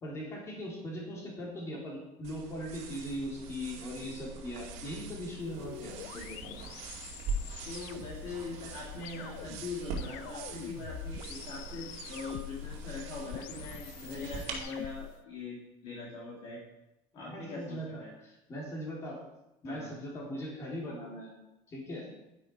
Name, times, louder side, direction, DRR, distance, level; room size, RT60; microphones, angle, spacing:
voice 1, 0.0-6.6 17.1-19.2 19.6-21.3 21.7-22.1, equal, 20° left, -3 dB, 3.7 m, -40 dB
sound 1, 2.2-14.6, right 3 dB, 55° right, 2.3 m, -43 dB
sound 2, 5.4-15.2, left 12 dB, 65° left, 0.6 m, -46 dB
voice 2, 7.6-16.6 17.1-18.1 19.7-19.9, left 3 dB, 40° left, -4 dB, 2.4 m, -42 dB
11.0 x 10.5 x 4.7 m, 0.92 s
cardioid pair, 175°, 13 cm